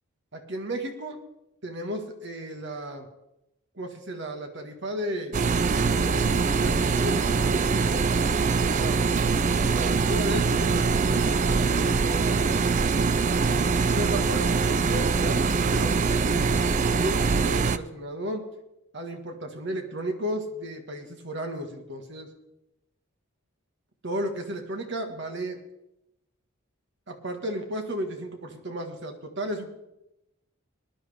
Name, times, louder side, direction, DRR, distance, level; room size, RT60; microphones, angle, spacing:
voice 1, 0.3-1.2 1.6-3.1 3.7-5.4 5.8-8.1 8.6-9.1 9.7-12.4 13.9-18.4 18.9-22.3 24.0-25.6 27.1-29.6, right 1 dB, 55° right, 4 dB, 1.6 m, -34 dB
sound 1, 5.3-17.8, right 4 dB, 35° right, 0.4 m, -23 dB
19.5 x 11.0 x 3.5 m, 0.90 s
head